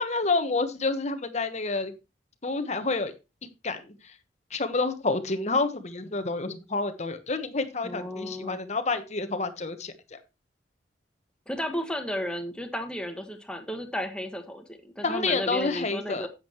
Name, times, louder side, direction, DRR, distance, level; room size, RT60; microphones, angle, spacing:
voice 1, 0.0-1.9 2.4-3.1 3.6-4.1 4.5-10.2 15.0-16.3, left 3 dB, 40° left, 8 dB, 1.2 m, -29 dB
voice 2, 7.8-8.6 11.5-16.3, left 1 dB, 5° left, 5 dB, 1.6 m, -33 dB
10.5 x 8.5 x 3.0 m, 0.26 s
head